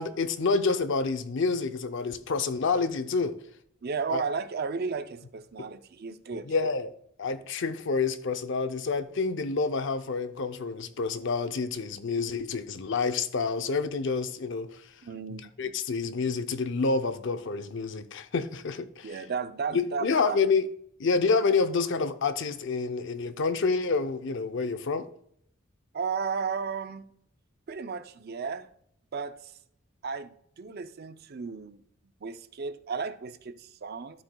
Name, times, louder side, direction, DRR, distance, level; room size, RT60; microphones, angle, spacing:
voice 1, 0.0-3.4 4.1-4.2 6.5-14.8 15.6-19.2 19.7-20.7 21.0-25.1, left 4 dB, 65° left, 0.6 m, -28 dB
voice 2, 3.8-6.5 15.0-15.5 19.0-20.4 25.9-27.0 27.7-28.7 29.1-29.5 30.0-31.8 32.2-34.2, right 5 dB, 50° right, 0.5 m, -34 dB
12.5 x 7.5 x 2.3 m
head